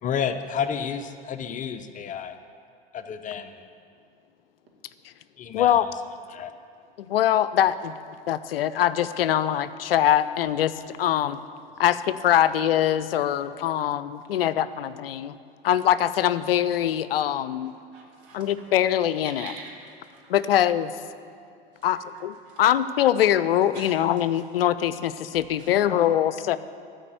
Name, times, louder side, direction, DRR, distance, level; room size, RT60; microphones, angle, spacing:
voice 1, 0.0-2.4 2.9-3.6 5.4-5.9 6.3-6.5, left 7 dB, 25° left, 9 dB, 0.5 m, -30 dB
voice 2, 5.5-5.9 7.0-7.9 8.3-10.7 11.0-11.4 11.8-15.3 15.6-17.7 18.3-19.5 20.3-20.9 21.8-26.6, left 11 dB, 75° left, 14 dB, 0.5 m, -23 dB
voice 3, 17.9-18.5 19.2-20.2 22.5-22.6 23.7-24.0 25.6-25.7, right 3 dB, 65° right, -1 dB, 2.2 m, -44 dB
13.0 x 4.9 x 7.7 m, 2.3 s
figure-of-eight pair, 80°, 29 cm